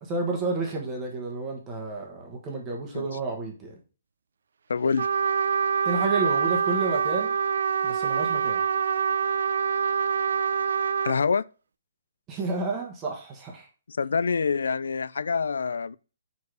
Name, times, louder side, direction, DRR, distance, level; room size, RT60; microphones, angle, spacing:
voice 1, 0.0-3.8 5.8-7.3 7.8-8.6 12.3-13.7, right 3 dB, 15° right, 1.2 m, -30 dB
voice 2, 4.7-5.1 11.0-11.4 13.9-16.0, left 5 dB, 85° left, 0.3 m, -26 dB
Trumpet, 5.0-11.2, right 7 dB, 75° right, 0.4 m, -25 dB
4.8 x 4.7 x 4.6 m
hypercardioid pair, 170°, 0 cm